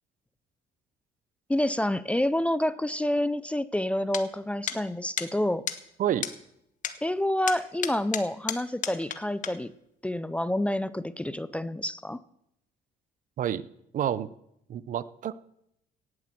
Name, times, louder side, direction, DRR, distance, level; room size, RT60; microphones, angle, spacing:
voice 1, 1.5-5.7 7.0-9.7 10.0-12.2, left 1 dB, 5° left, 16 dB, 0.5 m, -28 dB
sound 1, 4.1-4.2 4.7-4.8 5.2-5.3 5.7-5.8 6.2-6.3 6.8-7.0 7.5-9.2 9.4-9.5, left 8 dB, 50° left, 1.2 m, -31 dB
voice 2, 13.9-14.3 14.7-15.3, right 10 dB, 50° right, 17 dB, 0.7 m, -28 dB
17.5 x 7.7 x 7.5 m, 0.78 s
cardioid pair, 110°, 17 cm